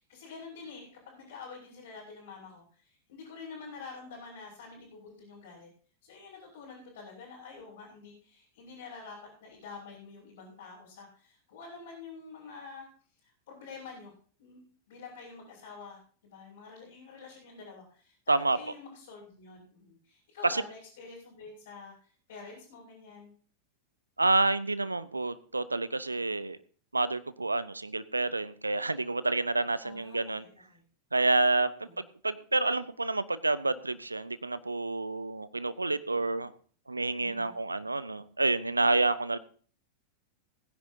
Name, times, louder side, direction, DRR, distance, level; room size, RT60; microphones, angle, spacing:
voice 1, 0.0-5.7 6.0-12.9 13.2-14.1 14.4-14.6 14.9-23.3 29.8-30.8 31.8-32.0 37.2-37.6, left 4 dB, 60° left, -7 dB, 5.9 m, -48 dB
voice 2, 24.2-26.6 26.9-30.4 31.1-31.9 32.2-36.5 36.9-39.4, right 2 dB, 80° right, 16 dB, 0.8 m, -28 dB
21.0 x 10.0 x 2.8 m, 0.43 s
figure-of-eight pair, 90°, 0 cm